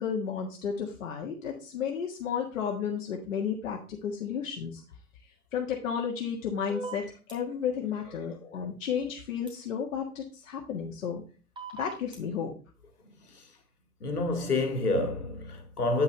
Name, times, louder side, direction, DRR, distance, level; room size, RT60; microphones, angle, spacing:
voice 1, 0.0-4.8 5.5-11.2 11.7-12.5, left 7 dB, 55° left, 1.7 m, -33 dB
sound 1, 6.7-7.3 9.5-9.6 11.6-12.2, right 4 dB, 10° right, 3.1 m, -39 dB
voice 2, 14.0-16.0, left 2 dB, 80° left, 2.1 m, -28 dB
9.3 x 5.6 x 3.3 m
figure-of-eight pair, 120°, 45 cm